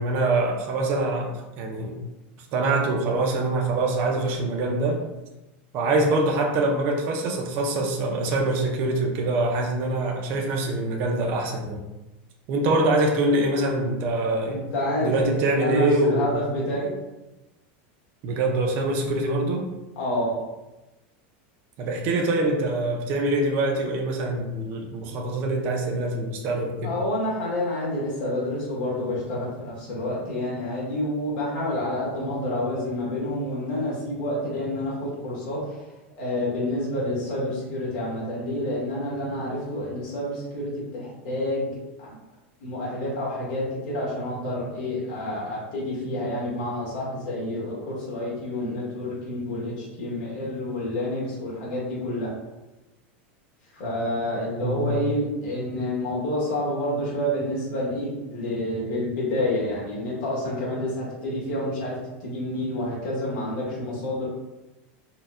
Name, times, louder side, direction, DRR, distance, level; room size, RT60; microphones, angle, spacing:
voice 1, 0.0-1.9 2.5-5.0 5.7-11.8 12.5-14.6 15.0-16.3 18.2-19.7 21.8-26.9 54.6-55.0, right 2 dB, 35° right, 1 dB, 0.4 m, -24 dB
voice 2, 14.4-16.9 20.0-20.4 26.8-35.6 36.2-41.7 42.0-42.1 42.6-52.3 53.7-64.3, left 1 dB, 45° left, -6 dB, 1.4 m, -28 dB
4.0 x 2.1 x 2.4 m, 1.0 s
supercardioid pair, 170°, 6 cm